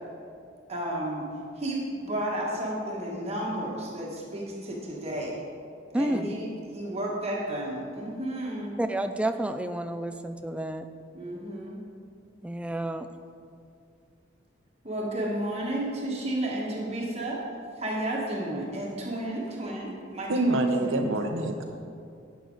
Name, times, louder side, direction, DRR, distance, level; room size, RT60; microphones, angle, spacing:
voice 1, 0.7-1.3 1.6-5.4 5.9-6.5 6.7-8.7 11.1-11.8 14.8-17.4 17.8-21.1, right 1 dB, 35° right, -3 dB, 1.6 m, -32 dB
voice 2, 5.9-6.3 8.8-10.9 12.4-13.1, right 1 dB, 5° right, 8 dB, 0.3 m, -30 dB
voice 3, 20.3-21.6, right 2 dB, 90° right, 5 dB, 0.9 m, -25 dB
11.5 x 8.1 x 4.0 m, 2.4 s
head